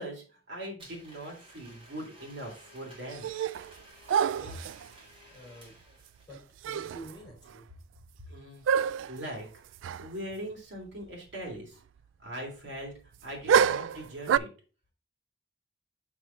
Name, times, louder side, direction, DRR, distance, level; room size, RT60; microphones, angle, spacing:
voice 1, 0.0-3.3 8.3-8.6 9.1-9.5 10.0-11.8 12.2-14.5, right 1 dB, 65° right, -1 dB, 3.2 m, -41 dB
Domestic sounds home sounds, 0.8-6.4, right 1 dB, 30° right, 2.0 m, -54 dB
sound 1, 3.1-3.7 4.1-4.9 6.3-6.4 6.6-7.1 7.5-7.6 8.7-9.2 9.8-10.1 10.3-10.4 13.5-14.4, right 7 dB, 85° right, 0.3 m, -27 dB
voice 2, 4.3-4.7 5.3-5.8 6.3-7.7, right 1 dB, 20° left, -2 dB, 4.1 m, -48 dB
6.2 x 6.0 x 4.0 m, 0.36 s
head